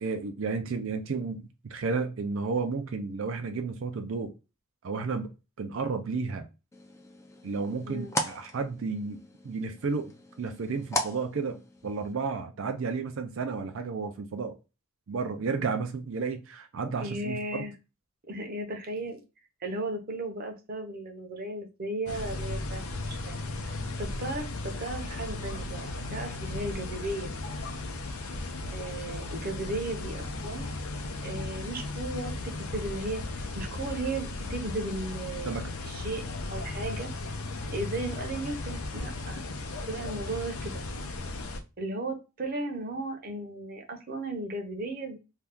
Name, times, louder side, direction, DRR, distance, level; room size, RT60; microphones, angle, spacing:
voice 1, 0.0-4.3 4.8-5.3 5.6-6.5 7.4-10.1 10.4-14.6 15.1-17.6 35.5-35.7, right 4 dB, 65° right, 6 dB, 0.4 m, -32 dB
sound 1, 6.7-12.1, left 1 dB, 15° left, 0.4 m, -37 dB
voice 2, 7.9-8.2 17.0-17.7 18.3-19.2 19.6-27.3 28.7-30.7 31.2-33.2 33.6-36.2 36.5-37.1 37.7-39.4 39.8-40.8 41.8-45.2, right 2 dB, 45° right, 3 dB, 0.8 m, -35 dB
sound 2, 22.1-41.6, left 2 dB, 85° left, 0.6 m, -36 dB
2.7 x 2.3 x 3.4 m, 0.28 s
head